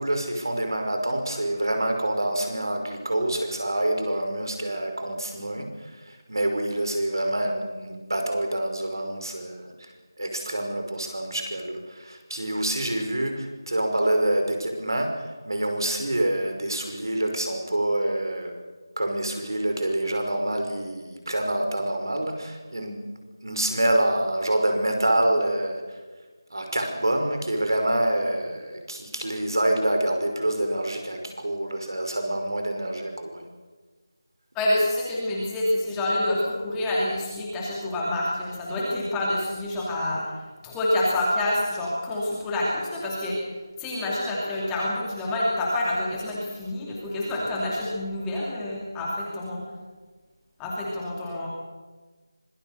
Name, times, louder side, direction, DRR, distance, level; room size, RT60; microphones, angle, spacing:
voice 1, 0.0-9.9 10.2-18.6 19.0-26.0 26.5-33.4, right 1 dB, 80° right, 5 dB, 5.6 m, -27 dB
voice 2, 34.5-40.2 40.6-43.4 43.8-49.6 50.6-51.5, left 1 dB, 5° left, -5 dB, 2.5 m, -27 dB
25.5 x 19.0 x 6.7 m, 1.3 s
figure-of-eight pair, 175°, 2 cm